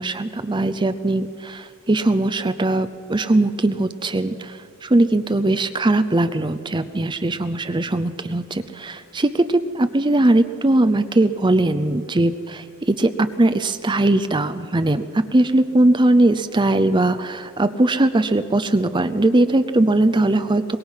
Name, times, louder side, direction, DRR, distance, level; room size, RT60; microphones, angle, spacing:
voice 1, 0.0-20.8, right 2 dB, 20° right, 10 dB, 0.5 m, -20 dB
23.5 x 21.0 x 5.7 m, 2.5 s
head